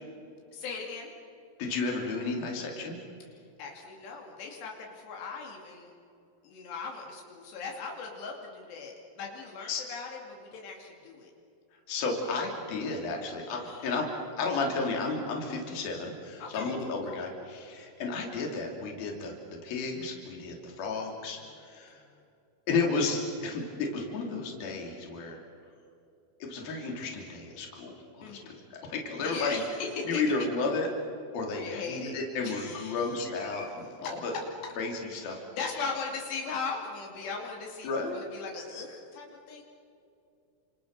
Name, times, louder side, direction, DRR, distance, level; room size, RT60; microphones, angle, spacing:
voice 1, 0.5-1.1 3.6-6.0 6.4-11.3 13.6-13.9 16.4-17.3 20.7-20.8 21.9-22.0 28.2-28.6 29.2-30.2 31.5-32.1 32.4-33.7 34.0-34.4 35.0-39.6, left 4 dB, 80° left, 0 dB, 4.8 m, -39 dB
voice 2, 1.6-3.0 9.7-9.8 11.9-14.1 14.4-19.3 19.6-22.0 22.7-25.4 26.4-29.6 30.1-30.9 31.3-33.7 34.0-34.3 34.8-35.4 37.8-38.2, left 3 dB, 60° left, 1 dB, 4.9 m, -32 dB
30.0 x 27.5 x 6.8 m, 2.6 s
omnidirectional pair, 4.8 m